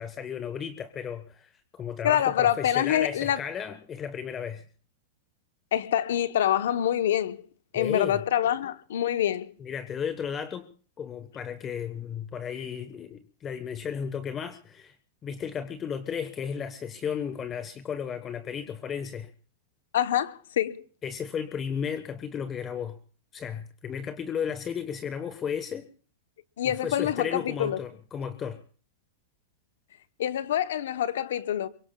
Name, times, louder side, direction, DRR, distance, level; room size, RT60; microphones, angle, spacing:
voice 1, 0.0-4.6 7.7-8.2 9.6-10.7 11.0-14.9 15.2-19.3 21.0-23.0 23.3-25.8 26.6-28.6, left 7 dB, 25° left, 1.1 m, -34 dB
voice 2, 2.0-3.4 5.7-7.4 7.7-9.5 12.5-12.6 19.9-20.8 26.6-27.8 30.2-31.7, left 11 dB, 75° left, 0.9 m, -26 dB
24.0 x 23.0 x 2.3 m
hypercardioid pair, 115°, 0 cm